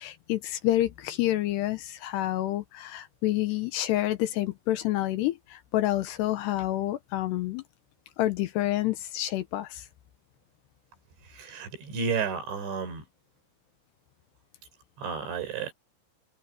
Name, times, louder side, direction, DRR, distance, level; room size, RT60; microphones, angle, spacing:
voice 1, 0.0-7.6 8.2-9.9, left 15 dB, 75° left, 2.7 m, -28 dB
voice 2, 11.2-13.0 15.0-15.7, right 6 dB, 70° right, 7.0 m, -32 dB
omnidirectional pair, 5.4 m